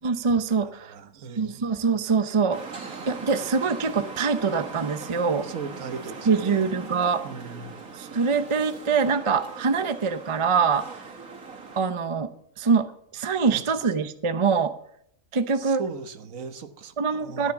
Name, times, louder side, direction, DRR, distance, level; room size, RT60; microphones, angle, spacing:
voice 1, 0.0-0.9 1.3-2.6 3.1-5.5 6.3-7.2 8.0-10.9 11.8-12.3 12.6-12.9 13.1-14.7 15.3-15.8 17.0-17.5, right 5 dB, 30° right, 11 dB, 0.6 m, -24 dB
voice 2, 0.6-1.7 5.4-6.6 7.2-7.8 13.5-13.6 15.5-17.5, right 5 dB, 70° right, 9 dB, 1.5 m, -38 dB
sound 1, 2.5-11.8, right 4 dB, 90° right, 2.6 m, -40 dB
13.5 x 9.4 x 7.1 m, 0.70 s
omnidirectional pair, 1.4 m